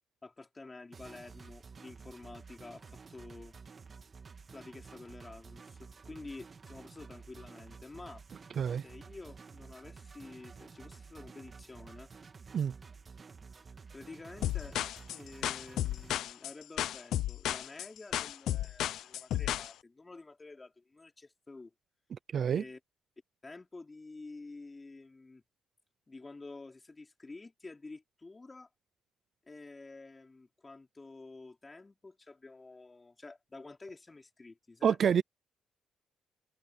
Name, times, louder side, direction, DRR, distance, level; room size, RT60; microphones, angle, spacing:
voice 1, 0.2-3.6 4.5-8.2 8.6-12.1 13.6-14.8 15.1-21.7 22.5-22.8 23.4-25.4 26.1-28.7 29.5-35.0, left 3 dB, 25° left, 4.1 m, -50 dB
sound 1, 0.9-16.1, right 5 dB, 35° right, 2.4 m, -52 dB
sound 2, 14.4-19.7, left 13 dB, 80° left, 0.9 m, -33 dB
voice 2, 22.1-22.6 34.8-35.2, right 8 dB, 55° right, 0.6 m, -28 dB
cardioid pair, 90°, 0 cm